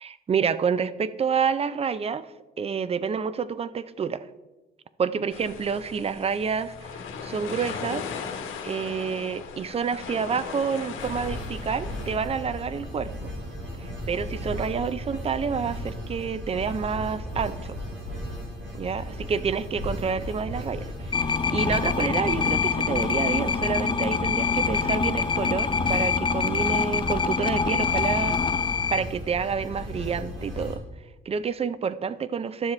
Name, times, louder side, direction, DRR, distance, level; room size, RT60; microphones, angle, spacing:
voice 1, 0.0-2.2 2.6-4.2 5.0-6.9 7.2-8.1 8.6-13.1 13.8-17.8 18.7-28.3 28.9-30.8 31.3-32.7, right 6 dB, 30° right, 15 dB, 0.5 m, -28 dB
sound 1, 5.3-12.2, left 6 dB, 80° left, 1.1 m, -37 dB
sound 2, 11.0-30.7, equal, 65° right, 3.1 m, -35 dB
sound 3, 21.1-29.0, left 5 dB, 25° left, 0.5 m, -25 dB
11.5 x 7.2 x 3.2 m, 1.1 s
cardioid pair, 90°, 20 cm